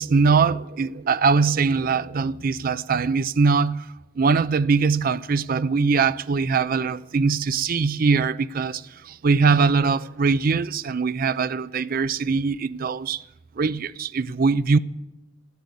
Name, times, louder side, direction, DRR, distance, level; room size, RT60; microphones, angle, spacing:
voice 1, 0.0-3.9 4.2-13.2 13.6-14.8, right 4 dB, 50° right, 0.5 m, -22 dB
13.0 x 11.5 x 8.2 m
head